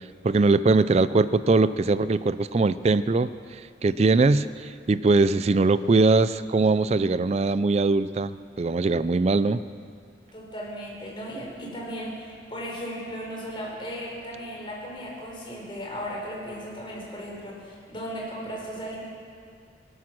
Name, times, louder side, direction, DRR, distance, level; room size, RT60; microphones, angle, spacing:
voice 1, 0.2-9.6, right 3 dB, 35° right, 15 dB, 0.3 m, -21 dB
voice 2, 10.3-19.0, equal, 25° left, -3 dB, 4.1 m, -36 dB
19.5 x 12.0 x 6.1 m, 2.2 s
head